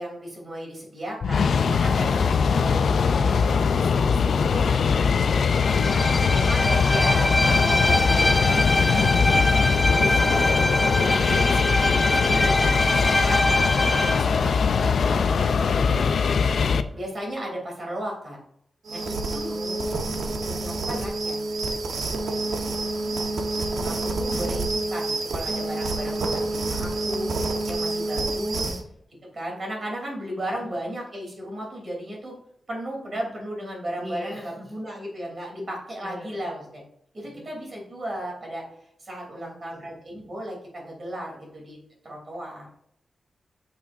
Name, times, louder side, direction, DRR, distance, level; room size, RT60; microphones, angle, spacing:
voice 1, 0.0-4.6 5.8-9.5 9.9-13.4 14.0-16.0 16.9-18.4 18.9-19.5 20.4-21.4 23.2-23.3 23.6-28.7 29.3-32.3 32.7-36.8 37.1-38.6 39.0-41.8 42.0-42.7, equal, 40° right, -1 dB, 3.1 m, -35 dB
sound 1, 1.2-16.8, left 5 dB, 70° left, 0.4 m, -21 dB
Bowed string instrument, 5.6-14.3, left 1 dB, 10° left, 0.6 m, -24 dB
sound 2, 18.9-28.8, right 2 dB, 80° right, 1.2 m, -28 dB
voice 2, 19.5-20.3 22.9-24.4 28.5-28.9 30.5-31.0 34.0-34.7 36.0-36.6 37.2-37.5 39.3-39.9, left 1 dB, 5° right, -6 dB, 2.5 m, -43 dB
8.7 x 7.1 x 2.6 m, 0.70 s
wide cardioid pair, 160°, 0 cm